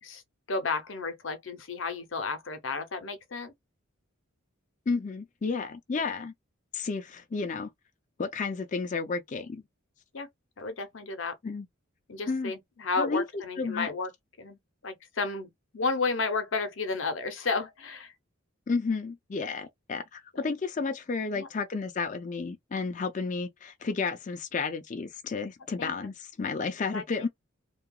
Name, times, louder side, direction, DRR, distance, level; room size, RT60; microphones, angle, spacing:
voice 1, 0.5-3.5 10.1-10.3 10.6-11.4 12.1-14.1 14.4-18.1 21.3-21.5 25.8-25.9 26.9-27.3, left 4 dB, 70° left, 0.7 m, -32 dB
voice 2, 4.9-6.3 6.7-7.7 8.2-9.6 11.4-11.7 12.3-12.5 13.0-13.2 13.6-13.9 18.7-27.3, left 4 dB, 35° left, 0.4 m, -32 dB
2.8 x 2.3 x 2.3 m
head